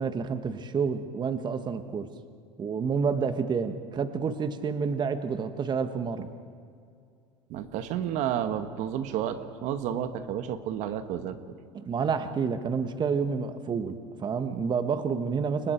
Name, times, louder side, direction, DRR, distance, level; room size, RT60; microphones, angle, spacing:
voice 1, 0.0-2.1 2.6-6.3 11.7-15.7, right 5 dB, 35° right, 9 dB, 1.5 m, -29 dB
voice 2, 7.5-11.4, right 10 dB, 60° right, 8 dB, 1.6 m, -31 dB
29.5 x 24.5 x 4.6 m, 2.4 s
hypercardioid pair, 90°, 14 cm